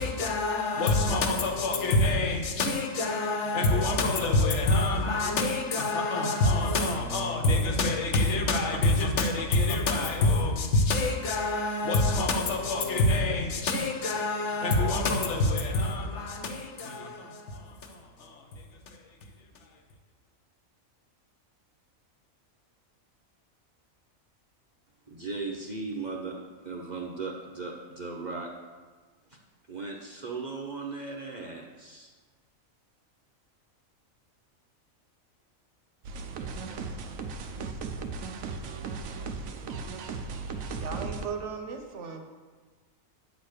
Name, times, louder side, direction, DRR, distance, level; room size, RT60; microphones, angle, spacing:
voice 1, 0.0-18.5, left 2 dB, 60° left, 1.2 m, -26 dB
voice 2, 25.1-26.4 26.6-28.5 29.3-29.4 29.7-32.1, right 3 dB, 40° right, 0.8 m, -37 dB
sound 1, 36.0-41.3, right 4 dB, 80° right, 1.1 m, -36 dB
voice 3, 40.8-42.2, right 5 dB, 65° right, 1.2 m, -37 dB
9.4 x 4.1 x 6.5 m
omnidirectional pair, 1.4 m